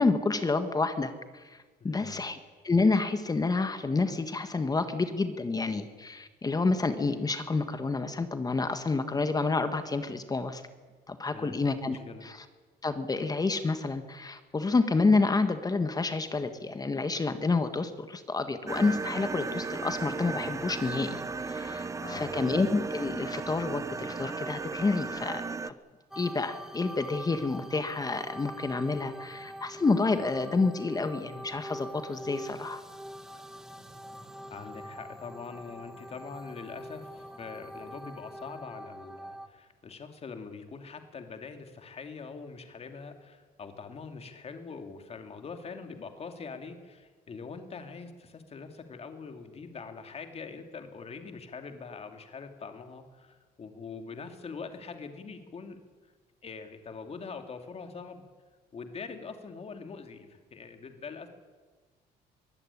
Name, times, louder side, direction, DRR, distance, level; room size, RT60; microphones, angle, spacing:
voice 1, 0.0-2.4 2.6-10.6 11.1-12.4 12.8-25.4 25.7-25.8 26.2-32.8, left 3 dB, 20° left, 9 dB, 1.6 m, -29 dB
voice 2, 1.8-2.3 11.3-12.3 22.0-22.4 34.5-55.8 56.4-58.2 58.7-61.3, left 5 dB, 35° left, 6 dB, 2.8 m, -43 dB
sound 1, 18.7-25.7, right 4 dB, 20° right, 0.9 m, -35 dB
sound 2, 26.1-39.5, equal, 5° right, 2.0 m, -44 dB
22.5 x 16.0 x 10.0 m, 1.4 s
cardioid pair, 110°, 17 cm